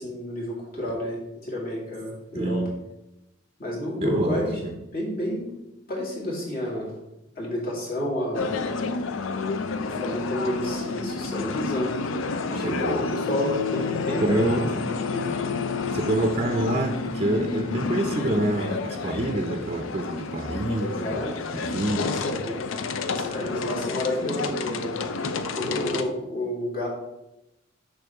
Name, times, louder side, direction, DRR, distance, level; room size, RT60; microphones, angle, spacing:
voice 1, 0.0-2.6 3.6-4.5 4.9-5.5 5.9-6.9 7.4-8.5 9.8-11.9 12.5-14.7 15.1-15.4 18.0-18.4 20.8-21.4 21.9-22.6 23.1-25.0 25.5-26.9, left 1 dB, 45° left, -4 dB, 2.2 m, -30 dB
voice 2, 2.3-2.8 4.0-4.8 12.6-13.0 14.2-14.7 15.9-21.2 21.5-22.2, right 1 dB, 30° right, 3 dB, 0.5 m, -26 dB
sound 1, 8.3-26.0, left 4 dB, 75° left, 0.5 m, -30 dB
6.6 x 5.5 x 3.5 m, 0.92 s
head